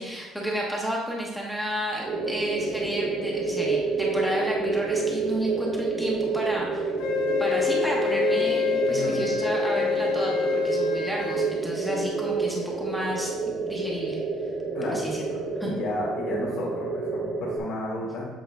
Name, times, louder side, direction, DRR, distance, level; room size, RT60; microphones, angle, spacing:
voice 1, 0.0-6.9 7.4-14.2 14.9-15.2 15.6-15.7, equal, 5° right, -3 dB, 0.8 m, -31 dB
sound 1, 2.0-17.6, right 4 dB, 45° right, 0.9 m, -29 dB
Wind instrument woodwind instrument, 7.0-11.4, left 7 dB, 70° left, 0.9 m, -27 dB
voice 2, 8.9-9.2 14.7-15.1 15.3-18.2, left 2 dB, 45° left, -7 dB, 1.5 m, -32 dB
7.9 x 5.0 x 3.5 m, 1.2 s
cardioid pair, 170°, 0 cm